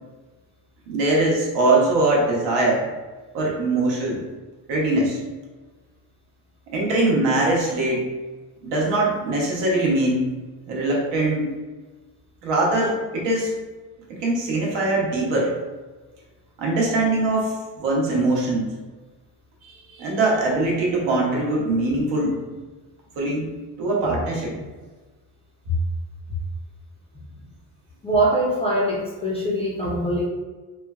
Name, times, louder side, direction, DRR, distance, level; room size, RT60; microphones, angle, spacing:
voice 1, 0.9-2.9 3.3-4.2 4.7-5.2 6.7-8.1 8.6-10.3 10.7-11.5 12.4-13.5 14.1-15.5 16.6-18.7 19.6-22.4 23.2-23.5 23.8-24.5, right 2 dB, 75° right, -2 dB, 0.9 m, -22 dB
voice 2, 28.0-30.3, right 1 dB, 15° left, -5 dB, 0.3 m, -23 dB
3.1 x 2.0 x 2.3 m, 1.3 s
cardioid pair, 125°, 42 cm